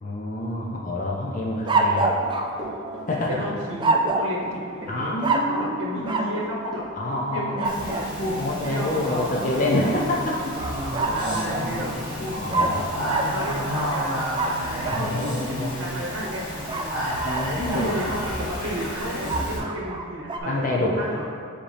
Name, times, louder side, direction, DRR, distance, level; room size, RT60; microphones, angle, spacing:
voice 1, 0.0-2.2 3.1-3.4 4.9-6.4 7.0-7.7 8.4-10.5 11.2-12.0 12.3-12.9 14.9-15.7 17.2-18.0 20.5-21.2, left 1 dB, 35° left, -2 dB, 0.5 m, -27 dB
sound 1, 1.6-3.2 3.8-4.4 5.2-5.6 6.0-6.4 7.6-8.1 10.6-11.8 12.5-15.1 16.7-17.9 19.3-20.4, right 3 dB, 20° right, 0.3 m, -26 dB
Run / Walk footsteps, 1.8-13.5, right 1 dB, ahead, 1.1 m, -38 dB
voice 2, 3.3-4.9 5.5-6.8 7.3-8.1 8.6-9.7 11.0-11.9 13.2-17.0 17.7-20.6 21.0-21.2, equal, 60° right, -3 dB, 1.0 m, -33 dB
Speech, 7.6-19.6, equal, 90° left, 1.4 m, -31 dB
7.6 x 4.2 x 3.3 m, 2.5 s
head